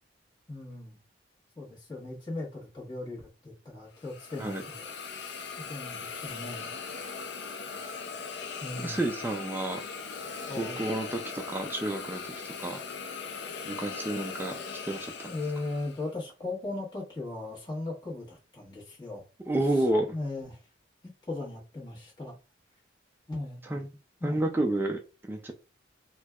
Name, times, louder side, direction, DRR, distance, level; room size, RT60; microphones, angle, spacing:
voice 1, 0.5-1.0 1.6-4.8 5.7-6.7 8.6-9.1 10.5-10.8 14.4-14.5 15.2-19.3 19.7-19.9 20.1-20.6 21.3-22.3 23.3-23.6 24.2-24.4, left 2 dB, 25° left, 1.3 m, -38 dB
Hiss, 4.0-16.1, left 5 dB, 60° left, 0.5 m, -39 dB
voice 2, 8.8-9.8 10.6-12.2 12.6-12.8 13.7-14.6 14.8-15.3 19.5-20.1 23.6-23.9 24.2-25.0 25.3-25.5, right 1 dB, 10° right, 0.3 m, -30 dB
4.3 x 2.3 x 2.3 m
head